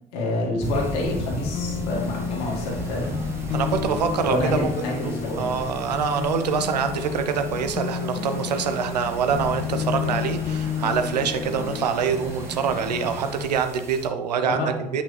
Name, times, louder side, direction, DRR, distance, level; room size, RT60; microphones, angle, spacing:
voice 1, 0.1-3.1 4.3-5.5 14.5-14.9, left 1 dB, 65° left, -1 dB, 1.9 m, -28 dB
sound 1, 0.6-11.9, left 8 dB, 30° left, 0.4 m, -31 dB
sound 2, 0.6-14.1, right 1 dB, 10° right, 1.3 m, -37 dB
sound 3, 2.0-13.5, right 2 dB, 45° right, 1.5 m, -39 dB
voice 2, 3.5-4.7 5.0-5.1 5.4-15.0, right 6 dB, 75° right, 8 dB, 0.6 m, -25 dB
8.3 x 5.6 x 3.3 m, 0.84 s
figure-of-eight pair, 55°, 21 cm